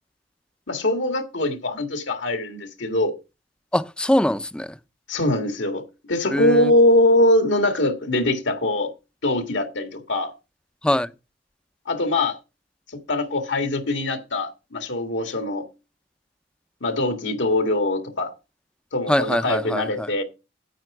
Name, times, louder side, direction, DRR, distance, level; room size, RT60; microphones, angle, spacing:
voice 1, 0.7-3.1 5.1-5.8 6.1-8.9 9.2-10.3 11.9-12.4 13.1-15.6 16.8-18.3 18.9-20.2, left 1 dB, 80° left, 1.8 m, -22 dB
voice 2, 3.7-4.8 6.3-6.7 10.8-11.1 19.1-20.1, left 1 dB, 5° left, 0.5 m, -22 dB
9.1 x 8.7 x 4.8 m
head